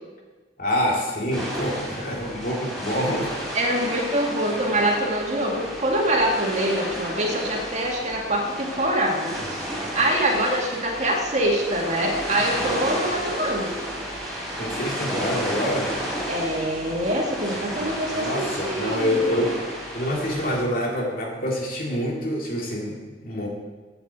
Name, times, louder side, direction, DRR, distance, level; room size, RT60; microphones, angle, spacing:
voice 1, 0.6-3.3 14.6-15.9 18.1-19.5 19.9-23.0 23.2-23.5, equal, 50° left, -1 dB, 2.4 m, -26 dB
sound 1, 1.3-20.6, equal, 5° left, 3.3 m, -32 dB
voice 2, 3.5-9.6 9.9-13.7 16.3-19.5, right 1 dB, 40° right, 0 dB, 1.9 m, -24 dB
8.0 x 7.8 x 8.0 m, 1.3 s
head